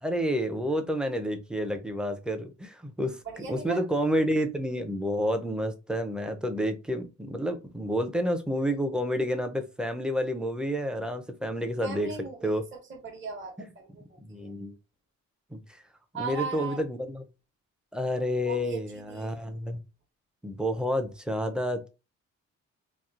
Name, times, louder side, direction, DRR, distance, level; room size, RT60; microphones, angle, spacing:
voice 1, 0.0-3.2 3.5-12.1 12.4-12.6 13.6-13.7 14.2-14.8 15.5-15.8 16.2-17.2 17.9-19.8 20.4-21.9, equal, 5° right, 6 dB, 0.4 m, -29 dB
voice 2, 3.2-3.8 11.8-14.5 16.1-16.8 18.4-18.8 19.1-19.3, right 4 dB, 40° right, 1 dB, 1.0 m, -38 dB
3.0 x 2.4 x 2.4 m, 0.29 s
cardioid pair, 90°, 30 cm